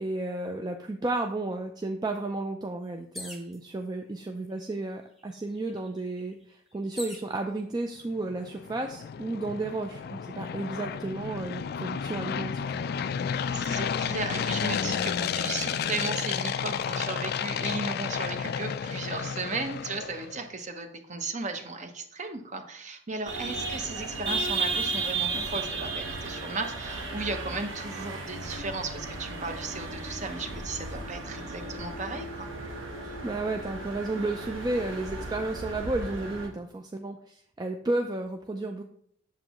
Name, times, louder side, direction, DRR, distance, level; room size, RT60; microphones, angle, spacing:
voice 1, 0.0-13.0 33.2-38.8, right 2 dB, 20° right, 4 dB, 0.4 m, -32 dB
sound 1, 3.1-3.6 4.5-4.6 4.9-7.3 8.1-8.6, left 1 dB, ahead, 0.9 m, -44 dB
sound 2, 8.1-20.4, left 7 dB, 55° left, 0.3 m, -32 dB
voice 2, 13.5-32.5, right 3 dB, 40° right, 6 dB, 0.8 m, -35 dB
sound 3, 23.3-36.5, right 3 dB, 90° right, 1.3 m, -35 dB
7.5 x 7.0 x 3.0 m, 0.66 s
head